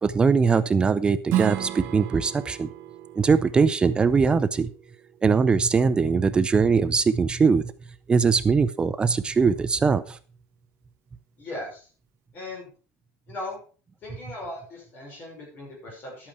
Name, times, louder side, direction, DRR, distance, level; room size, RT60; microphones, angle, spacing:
voice 1, 0.0-2.7 3.2-4.7 5.2-7.6 8.1-10.0, right 5 dB, 15° right, 12 dB, 0.5 m, -21 dB
Strum, 1.3-6.5, right 13 dB, 45° right, 1.0 m, -34 dB
voice 2, 11.4-11.9 12.3-12.7 13.3-13.6 14.0-16.3, left 2 dB, 30° left, -2 dB, 6.0 m, -38 dB
12.0 x 8.7 x 4.8 m, 0.38 s
cardioid pair, 175°, 6 cm